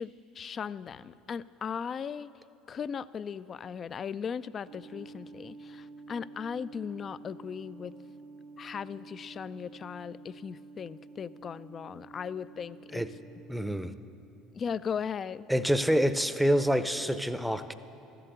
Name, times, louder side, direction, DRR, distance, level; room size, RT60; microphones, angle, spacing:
voice 1, 0.0-2.3 2.7-7.9 8.6-13.0 14.5-15.5, left 7 dB, 40° left, 17 dB, 0.3 m, -37 dB
sound 1, 4.7-13.6, right 3 dB, 70° right, 0.8 m, -49 dB
voice 2, 13.5-13.9 15.5-17.7, equal, ahead, 12 dB, 0.6 m, -27 dB
13.0 x 7.7 x 8.0 m, 2.8 s
hypercardioid pair, 70°, 0 cm